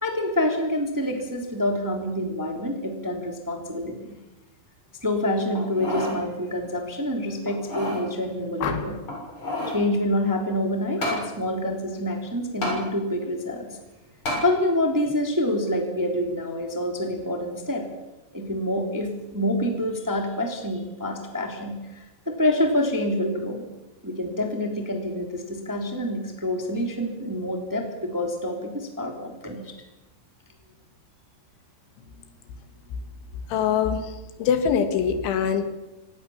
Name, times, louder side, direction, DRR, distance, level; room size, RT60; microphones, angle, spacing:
voice 1, 0.0-4.2 5.0-9.0 9.7-13.7 14.4-17.8 18.3-23.7 24.0-29.7, left 1 dB, 5° right, 4 dB, 2.1 m, -27 dB
sound 1, 5.5-6.2 6.6-6.7 7.5-8.0 9.0-9.8 11.0-11.2 12.6-12.8 14.2-14.4 15.0-15.1, left 1 dB, 25° left, 7.5 m, -29 dB
sound 2, 8.6-9.2 11.0-11.2 11.6-12.0, left 6 dB, 60° left, 3.3 m, -33 dB
voice 2, 33.5-34.1 34.4-35.6, left 7 dB, 80° left, 9 dB, 4.1 m, -23 dB
26.0 x 19.0 x 7.1 m, 1.0 s
omnidirectional pair, 5.4 m